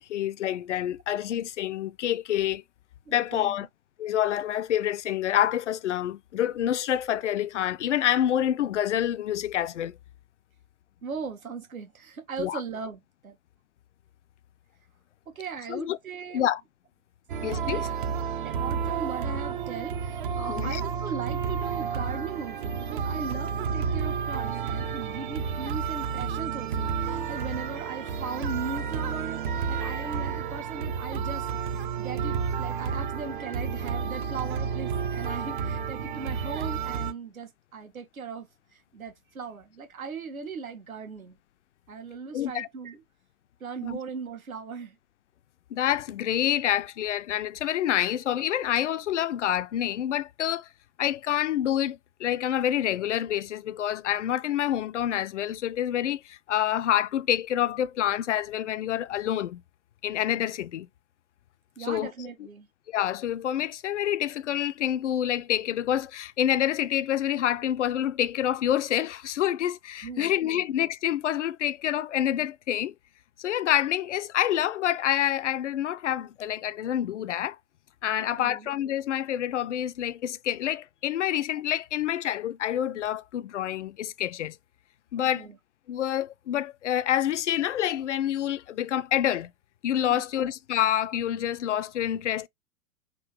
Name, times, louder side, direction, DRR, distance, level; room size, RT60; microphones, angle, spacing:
voice 1, 0.0-2.6 3.1-3.7 4.0-10.0 12.4-12.6 15.7-16.0 16.3-16.6 17.4-17.9 20.5-20.8 42.3-42.7 43.8-44.0 45.7-50.7 51.0-59.6 60.0-60.9 61.8-62.1 62.9-72.9 73.4-77.6 78.0-84.6 85.1-85.5 85.9-89.5 89.8-92.5, left 11 dB, 55° left, 0.5 m, -27 dB
voice 2, 3.1-3.6 11.0-13.4 15.3-16.5 17.6-17.8 18.4-31.5 31.7-41.4 41.9-43.0 43.6-45.0 61.8-62.7 70.0-70.6 78.2-78.7 85.2-85.6 90.1-90.2, right 5 dB, 70° right, 1.4 m, -38 dB
sound 1, 17.3-37.1, right 6 dB, 35° right, 0.5 m, -31 dB
3.8 x 2.7 x 4.7 m
figure-of-eight pair, 110°, 44 cm